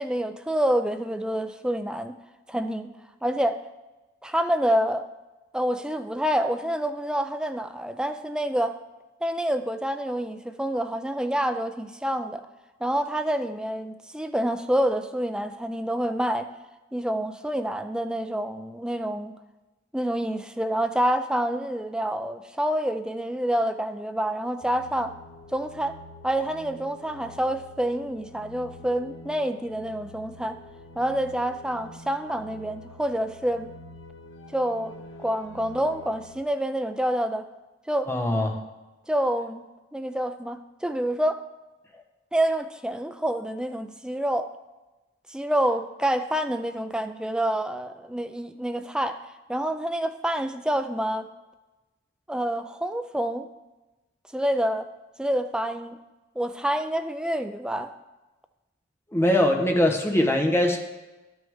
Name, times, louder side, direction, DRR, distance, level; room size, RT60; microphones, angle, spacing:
voice 1, 0.0-2.1 2.5-2.9 3.2-3.6 4.2-5.1 5.5-8.8 9.2-12.4 12.8-16.5 16.9-19.4 19.9-25.1 25.5-26.0 26.2-30.6 31.0-33.7 34.5-35.0 35.2-37.5 37.9-38.1 39.1-39.7 39.9-41.4 42.3-44.5 45.3-49.2 49.5-51.3 52.3-53.5 54.3-54.9 55.2-56.0 56.4-57.9, right 1 dB, 5° right, 8 dB, 0.4 m, -27 dB
sound 1, 24.6-36.4, left 1 dB, 80° left, 0.9 m, -47 dB
voice 2, 38.1-38.6 59.1-60.8, left 1 dB, 15° left, 2 dB, 0.9 m, -22 dB
11.5 x 6.2 x 3.5 m, 1.1 s
head